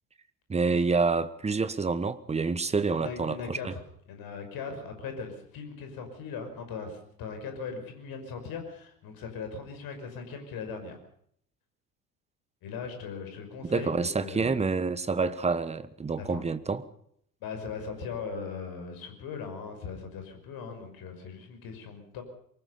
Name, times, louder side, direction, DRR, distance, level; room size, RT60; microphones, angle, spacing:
voice 1, 0.5-3.7 13.7-16.8, right 4 dB, 15° right, 1.4 m, -28 dB
voice 2, 3.0-3.8 4.1-11.0 12.6-14.7 16.2-16.4 17.4-22.2, left 5 dB, 45° left, 6.0 m, -39 dB
23.5 x 20.0 x 5.6 m
figure-of-eight pair, 70°, 49 cm